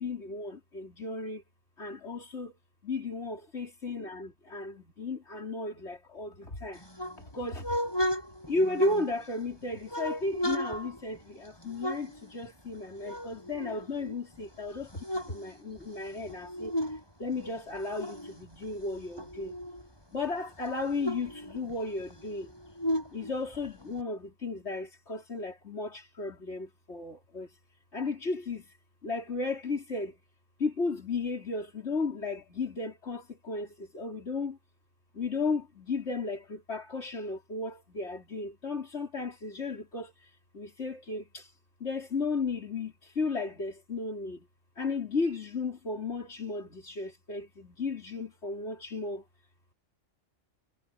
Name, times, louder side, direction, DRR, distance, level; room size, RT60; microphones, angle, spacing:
voice 1, 0.0-1.4 1.8-2.5 2.8-6.8 7.3-7.7 8.5-14.9 15.3-16.7 17.2-19.6 20.1-22.5 23.1-27.5 27.9-28.6 29.0-30.2 30.6-34.6 35.1-40.1 40.5-41.5 41.8-44.5 44.8-49.2, left 3 dB, 60° left, 4.5 m, -34 dB
sound 1, 6.7-9.4 9.9-12.8 13.0-14.4 14.8-17.0 17.3-19.9 20.2-20.3 20.6-24.0, equal, 20° left, 8.0 m, -35 dB
omnidirectional pair, 1.3 m